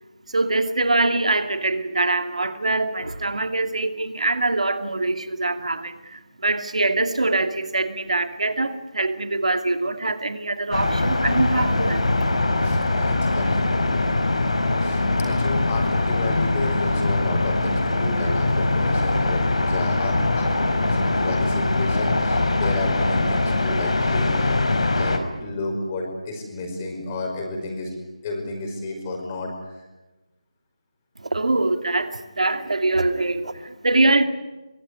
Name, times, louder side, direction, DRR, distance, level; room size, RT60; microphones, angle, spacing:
voice 1, 0.3-12.3 31.2-34.2, right 2 dB, 75° right, 2.5 m, -23 dB
sound 1, 10.7-25.2, left 2 dB, 65° left, 4.6 m, -22 dB
voice 2, 12.6-13.7 14.8-24.6 25.0-27.9 28.2-29.5, left 2 dB, 20° left, 5.4 m, -31 dB
24.0 x 21.0 x 9.8 m
figure-of-eight pair, 170°, 4 cm